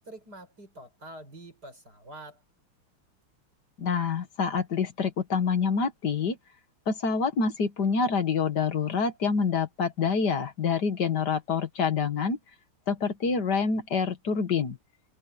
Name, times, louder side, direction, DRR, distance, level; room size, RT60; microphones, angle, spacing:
voice 1, 0.0-2.4, right 1 dB, 45° right, 6.7 m, -46 dB
voice 2, 3.8-6.4 6.9-12.4 12.9-14.8, left 5 dB, 50° left, 2.1 m, -27 dB
omnidirectional pair, 2.4 m